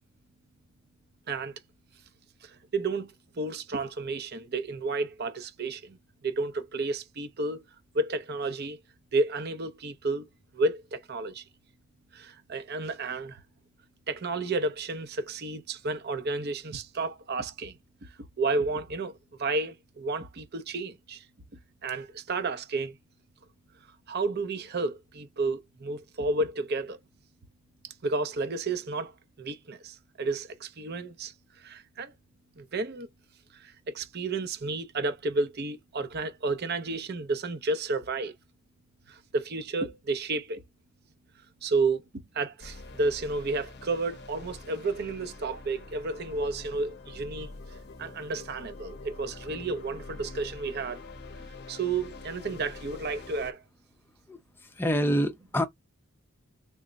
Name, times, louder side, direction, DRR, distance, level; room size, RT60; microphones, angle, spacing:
voice 1, 1.3-1.6 2.4-6.0 6.2-7.6 7.9-8.8 9.1-10.3 10.5-11.4 12.1-13.4 14.1-21.2 21.8-23.0 24.1-27.0 27.8-32.1 32.6-33.1 33.5-38.3 39.1-40.6 41.6-47.5 48.0-51.0 51.7-53.6, right 3 dB, 50° right, 0.6 m, -31 dB
sound 1, 42.6-53.5, left 3 dB, 50° left, 0.7 m, -45 dB
voice 2, 54.8-55.6, equal, 10° left, 0.5 m, -26 dB
3.4 x 2.1 x 3.8 m
head